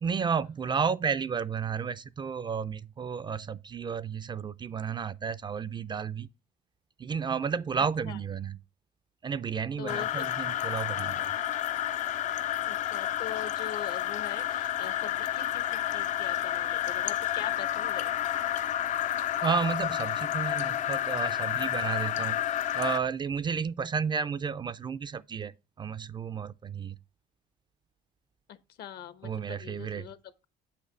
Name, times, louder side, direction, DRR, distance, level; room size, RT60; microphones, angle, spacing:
voice 1, 0.0-6.3 7.0-8.6 9.2-11.3 19.4-27.0 29.2-30.1, right 6 dB, 25° right, 0.4 m, -32 dB
voice 2, 9.8-10.1 12.7-18.1 28.5-30.2, left 9 dB, 70° left, 1.0 m, -42 dB
sound 1, 9.9-23.0, left 11 dB, 45° left, 0.4 m, -30 dB
8.1 x 5.7 x 3.2 m
cardioid pair, 110°, 17 cm